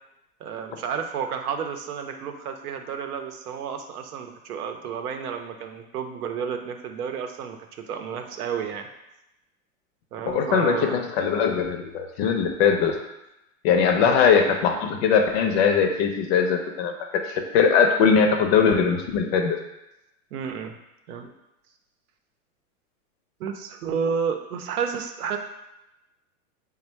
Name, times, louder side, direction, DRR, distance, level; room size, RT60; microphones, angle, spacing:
voice 1, 0.4-7.6 7.9-8.9 10.1-11.0 14.0-14.2 20.3-20.8 21.1-21.3 23.4-25.4, right 7 dB, 80° right, 5 dB, 0.7 m, -31 dB
voice 2, 10.3-12.9 13.6-16.9 17.3-19.6, left 6 dB, 45° left, 4 dB, 0.6 m, -21 dB
3.4 x 2.2 x 4.4 m, 0.91 s
hypercardioid pair, 130°, 44 cm